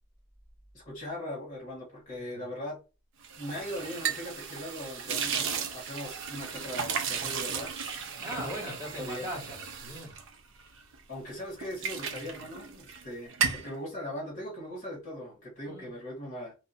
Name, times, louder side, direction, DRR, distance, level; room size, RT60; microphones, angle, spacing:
voice 1, 0.7-2.8 3.4-7.7 8.9-9.3 11.1-16.5, left 1 dB, 40° left, 1.3 m, -40 dB
sound 1, 3.2-11.0 11.4-13.0 13.3-13.7, right 6 dB, 60° right, 0.5 m, -35 dB
voice 2, 8.2-10.2 15.7-15.9, equal, 15° right, 1.4 m, -39 dB
3.1 x 2.7 x 2.7 m
head